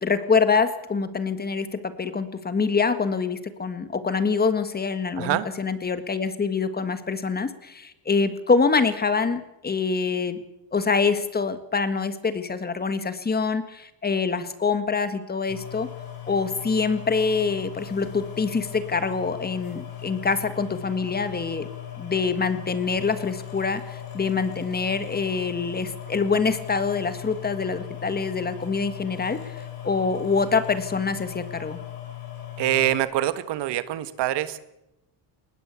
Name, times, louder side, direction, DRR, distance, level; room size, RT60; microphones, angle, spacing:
voice 1, 0.0-10.4 10.7-15.9 16.3-21.7 22.0-31.8, left 4 dB, 20° left, 11 dB, 1.7 m, -25 dB
sound 1, 15.5-33.0, left 12 dB, 55° left, 7.7 m, -38 dB
voice 2, 32.6-34.6, right 13 dB, 70° right, 13 dB, 1.6 m, -25 dB
21.0 x 19.5 x 8.3 m, 0.90 s
cardioid pair, 130°, 43 cm